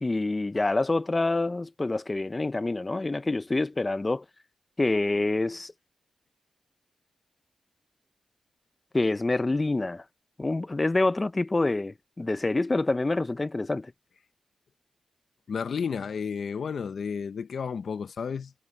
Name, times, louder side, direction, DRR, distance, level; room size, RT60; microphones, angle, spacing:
voice 1, 0.0-4.2 4.8-5.7 8.9-10.0 10.4-13.9, left 2 dB, 25° left, 0.6 m, -26 dB
voice 2, 15.5-18.5, left 6 dB, 70° left, 0.7 m, -32 dB
cardioid pair, 85°, 0 cm